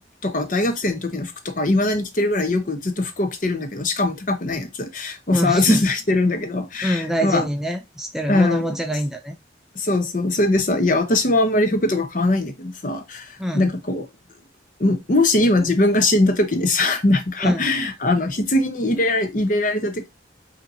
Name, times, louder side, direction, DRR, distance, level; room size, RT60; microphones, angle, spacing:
voice 1, 0.2-7.4 8.3-8.6 9.7-14.0 14.8-20.1, left 2 dB, 45° left, 0.8 m, -21 dB
voice 2, 5.3-5.9 6.8-9.3 13.4-13.7 17.4-17.6, equal, ahead, 0.4 m, -24 dB
5.4 x 2.8 x 2.7 m
head